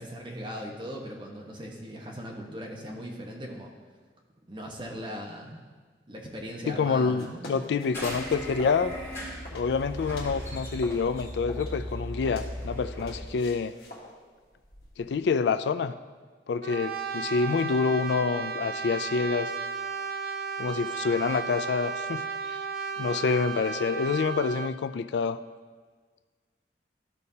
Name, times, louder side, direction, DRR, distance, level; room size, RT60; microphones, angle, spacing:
voice 1, 0.0-3.7 4.5-5.6 6.1-7.7, equal, 30° right, 0 dB, 1.1 m, -39 dB
voice 2, 6.7-8.9 9.5-13.8 15.0-15.9 16.5-19.5 20.6-22.6 23.0-25.4, left 5 dB, 80° left, 11 dB, 0.3 m, -27 dB
sound 1, 6.9-10.5 10.7-15.2, left 1 dB, 60° left, 1.5 m, -46 dB
sound 2, 7.9-13.2, equal, 15° left, 2.6 m, -37 dB
Brass instrument, 16.6-24.8, right 5 dB, 55° right, 0.5 m, -34 dB
13.5 x 5.3 x 2.8 m, 1.5 s
head